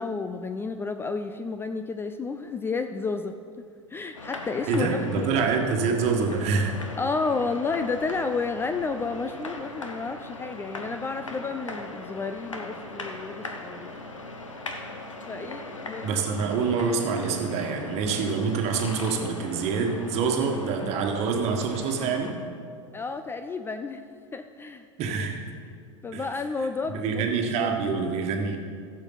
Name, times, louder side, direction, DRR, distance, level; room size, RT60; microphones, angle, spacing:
voice 1, 0.0-4.9 5.1-5.3 7.0-13.9 15.3-16.2 22.9-24.0 24.3-25.2 26.0-27.3 27.6-27.7, left 4 dB, 15° left, 8 dB, 0.4 m, -31 dB
sound 1, 4.1-22.3, left 2 dB, 85° left, 1.1 m, -39 dB
voice 2, 4.7-6.7 16.0-22.3 25.0-25.4 26.1-26.2 26.8-28.6, right 5 dB, 40° right, 3 dB, 1.6 m, -26 dB
15.5 x 7.3 x 4.0 m, 2.2 s
figure-of-eight pair, 90°, 16 cm